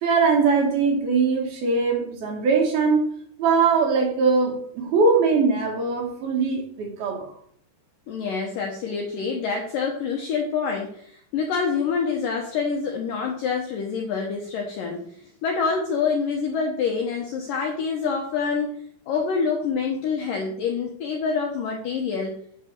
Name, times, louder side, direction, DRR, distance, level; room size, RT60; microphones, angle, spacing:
voice 1, 0.0-3.1 3.4-7.4, right 4 dB, 65° right, 0 dB, 3.2 m, -21 dB
voice 2, 8.1-18.8 19.1-22.4, left 5 dB, 75° left, 1 dB, 2.0 m, -26 dB
9.9 x 4.0 x 7.4 m, 0.62 s
omnidirectional pair, 5.2 m